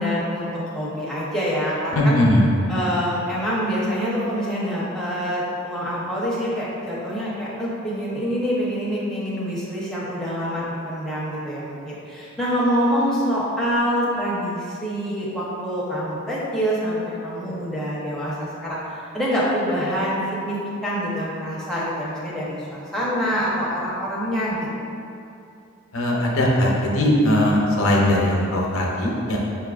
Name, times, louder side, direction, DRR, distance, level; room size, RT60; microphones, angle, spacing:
voice 1, 0.0-2.2 2.7-24.6, equal, 5° left, -8 dB, 0.7 m, -26 dB
voice 2, 1.9-2.5 25.9-29.4, left 1 dB, 75° left, -2 dB, 0.6 m, -19 dB
5.5 x 2.4 x 2.3 m, 2.6 s
head